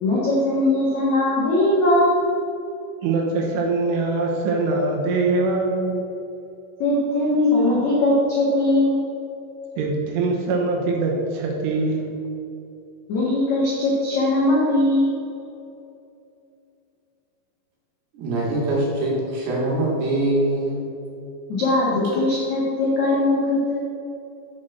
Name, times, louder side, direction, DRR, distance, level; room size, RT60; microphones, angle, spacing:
voice 1, 0.0-2.2 6.8-9.0 13.1-15.2 21.5-23.8, left 1 dB, 75° left, -6 dB, 1.7 m, -20 dB
voice 2, 3.0-6.0 9.8-12.2, right 3 dB, 80° right, -1 dB, 3.4 m, -23 dB
voice 3, 18.1-20.9 21.9-22.0, right 2 dB, 60° right, -5 dB, 3.6 m, -23 dB
7.7 x 6.5 x 6.1 m, 2.7 s
omnidirectional pair, 6.0 m